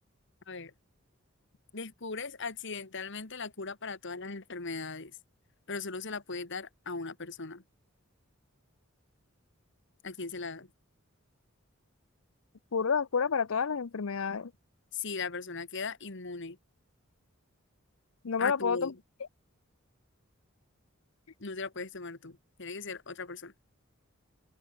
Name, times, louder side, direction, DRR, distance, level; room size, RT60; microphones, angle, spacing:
voice 1, 1.7-5.2 5.7-7.6 10.0-10.7 14.9-16.6 18.4-18.9 21.4-23.5, left 4 dB, 60° left, 2.1 m, -38 dB
voice 2, 12.7-14.5 18.2-18.9, left 6 dB, 85° left, 0.7 m, -29 dB
open air
head